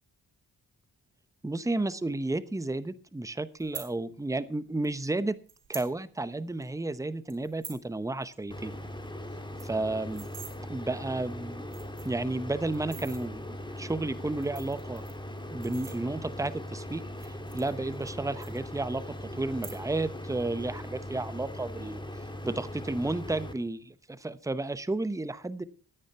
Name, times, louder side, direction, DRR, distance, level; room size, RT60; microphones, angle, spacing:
voice 1, 1.4-5.4 5.7-8.8 9.6-10.2 10.7-11.6 12.0-15.0 15.5-25.6, right 2 dB, 10° right, 15 dB, 0.8 m, -32 dB
sound 1, 3.6-3.9 4.8-4.9 5.5-5.9 6.3-6.4 6.6-6.8 7.3-7.9 8.2-8.4 8.6-8.7 9.0-9.1 9.4-10.5 11.2-11.3 11.6-12.2 12.7-13.2 14.2-16.4 17.1-18.1 18.4-19.0 19.5-20.1 20.4-20.8, right 6 dB, 65° right, 3.6 m, -45 dB
sound 2, 8.5-23.5, left 1 dB, 10° left, 1.9 m, -40 dB
13.5 x 9.4 x 5.6 m, 0.41 s
cardioid pair, 60°, 39 cm